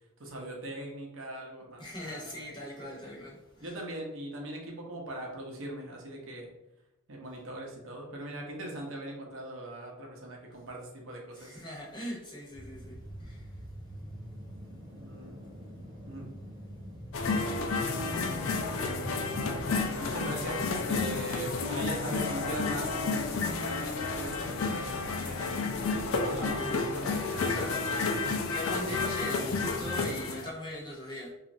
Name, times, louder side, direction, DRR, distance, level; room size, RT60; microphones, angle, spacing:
voice 1, 0.2-3.2 3.6-6.5 7.1-11.6 15.0-15.4 16.1-16.3 19.3-25.8 26.2-28.2, right 1 dB, 60° right, 0 dB, 0.6 m, -41 dB
voice 2, 1.8-3.7 11.3-13.5 27.5-28.0 28.5-31.3, left 1 dB, 20° left, -4 dB, 0.7 m, -40 dB
sound 1, 12.5-19.8, equal, 20° right, 0.7 m, -45 dB
sound 2, 17.1-30.5, left 4 dB, 65° left, 0.4 m, -31 dB
2.9 x 2.4 x 2.6 m, 0.90 s
head